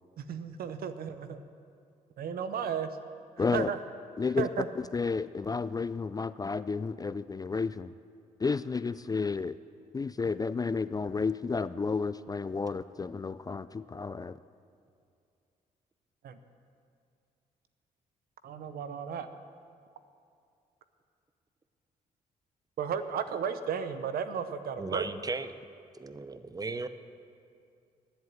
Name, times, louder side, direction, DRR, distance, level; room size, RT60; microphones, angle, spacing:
voice 1, 0.2-1.4 2.2-2.9 3.5-3.8 4.4-4.7 16.2-16.4 18.4-19.3 22.8-25.1, right 7 dB, 70° right, 10 dB, 0.8 m, -34 dB
voice 2, 3.4-3.7 4.2-4.5 4.8-7.9 8.4-9.6 9.9-14.4, left 4 dB, 25° left, 15 dB, 0.4 m, -31 dB
voice 3, 24.8-25.5 26.0-26.9, right 3 dB, 25° right, 12 dB, 0.8 m, -35 dB
10.5 x 8.0 x 9.3 m, 2.4 s
supercardioid pair, 60°, 16 cm